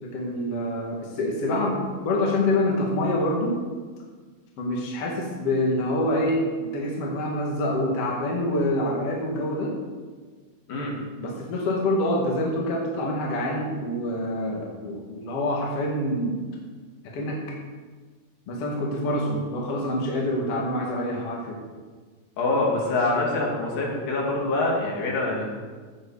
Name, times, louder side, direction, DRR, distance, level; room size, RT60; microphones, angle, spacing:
voice 1, 0.0-3.6 4.6-9.8 11.2-16.4 17.1-17.6 18.5-21.6, left 1 dB, 45° left, -2 dB, 2.7 m, -26 dB
voice 2, 22.4-25.5, left 2 dB, 75° left, -2 dB, 4.0 m, -25 dB
16.0 x 7.4 x 5.0 m, 1.5 s
omnidirectional pair, 4.0 m